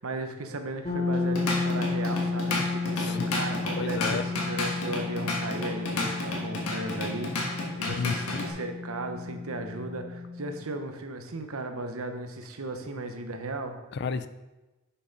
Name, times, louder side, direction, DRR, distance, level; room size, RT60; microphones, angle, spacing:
voice 1, 0.0-13.8, right 2 dB, 75° right, 6 dB, 0.9 m, -36 dB
sound 1, 0.8-10.6, left 4 dB, 35° left, 2.2 m, -32 dB
Drum kit / Drum, 1.1-8.5, left 2 dB, 85° left, 1.4 m, -32 dB
voice 2, 2.9-3.3 3.8-4.2 7.9-8.5 13.9-14.3, left 5 dB, 50° left, 12 dB, 0.4 m, -32 dB
6.5 x 5.6 x 5.2 m, 1.1 s
head